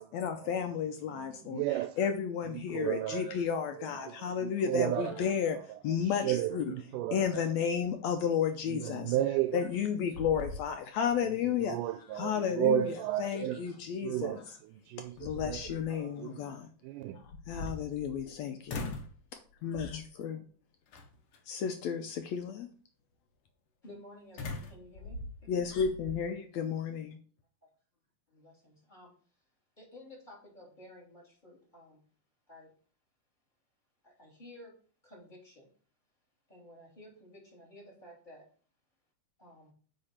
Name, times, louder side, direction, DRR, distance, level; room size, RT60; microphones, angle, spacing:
voice 1, 0.1-5.6 5.8-6.6 7.1-9.2 9.5-11.8 12.1-14.6 15.2-16.7 17.1-18.9 19.6-20.4 21.5-22.7 25.5-27.2, left 7 dB, 75° left, 1.7 m, -33 dB
voice 2, 1.1-2.0 2.5-3.4 3.8-5.3 5.7-5.8 6.1-7.4 8.7-9.6 9.9-10.0 11.2-11.3 11.6-13.7 14.0-17.2, right 12 dB, 85° right, 2.1 m, -34 dB
sound 1, 9.5-9.8 10.1-11.1 11.5-11.6 14.3-14.4 15.0-15.9 17.2-18.3 18.7-19.2 19.7-20.1 20.9-21.4 24.4-26.2, left 2 dB, 60° left, 2.0 m, -41 dB
voice 3, 23.8-25.2 25.5-25.7 28.3-29.1 29.8-32.1 32.5-32.7 34.0-34.8 35.0-35.7 36.5-38.4 39.4-39.7, left 1 dB, 15° left, 2.9 m, -53 dB
8.8 x 4.5 x 4.3 m
omnidirectional pair, 3.6 m